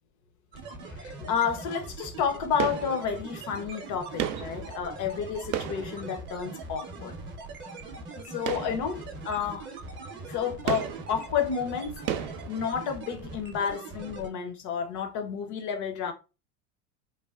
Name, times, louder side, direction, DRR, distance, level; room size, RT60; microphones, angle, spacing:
sound 1, 0.5-14.3, right 3 dB, 25° right, 0.7 m, -41 dB
voice 1, 0.9-7.2 8.2-9.7 10.3-16.1, left 7 dB, 40° left, 0.7 m, -31 dB
sound 2, 2.6-3.5 4.2-6.8 8.4-9.4 9.7-9.9 10.7-13.2 13.5-13.6, right 11 dB, 60° right, 0.5 m, -35 dB
3.2 x 2.1 x 2.3 m
hypercardioid pair, 100°, 45 cm